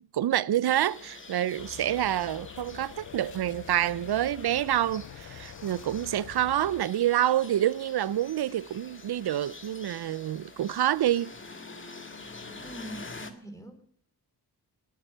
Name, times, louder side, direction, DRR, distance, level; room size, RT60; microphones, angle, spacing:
voice 1, 0.0-11.3, right 12 dB, 70° right, 0.6 m, -27 dB
sound 1, 0.6-13.3, left 3 dB, 30° left, 1.9 m, -47 dB
sound 2, 1.6-6.8, left 10 dB, 50° left, 0.5 m, -46 dB
voice 2, 12.6-13.8, right 1 dB, 10° left, 3.7 m, -43 dB
20.0 x 7.8 x 6.7 m
wide cardioid pair, 90°, 41 cm